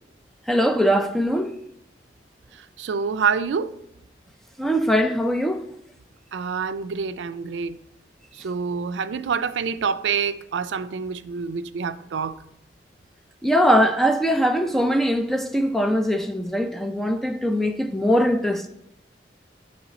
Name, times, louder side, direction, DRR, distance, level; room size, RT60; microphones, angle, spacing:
voice 1, 0.5-1.6 4.6-5.6 13.4-18.7, equal, ahead, 0.3 m, -21 dB
voice 2, 2.8-3.7 6.3-7.8 8.3-12.3, right 6 dB, 80° right, 0.4 m, -26 dB
8.9 x 3.2 x 4.0 m
head